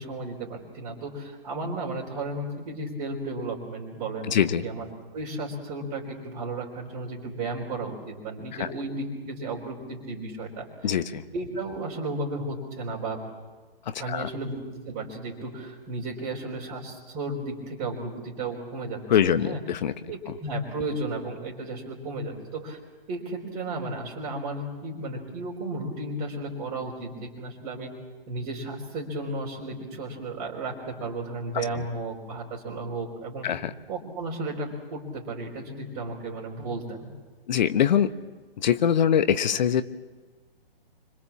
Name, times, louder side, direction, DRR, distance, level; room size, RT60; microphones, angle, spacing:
voice 1, 0.0-4.4 4.6-10.9 11.3-13.2 14.0-19.6 20.1-22.8 23.1-27.9 28.3-33.5 33.9-37.1, right 2 dB, 30° right, -5 dB, 4.4 m, -34 dB
voice 2, 4.3-4.6 8.6-8.7 10.8-11.2 13.9-14.3 19.1-19.9 31.5-31.6 33.4-33.7 37.5-38.1 38.6-39.8, left 9 dB, 50° left, 11 dB, 1.2 m, -23 dB
26.0 x 24.5 x 7.4 m, 1.3 s
figure-of-eight pair, 130°, 30 cm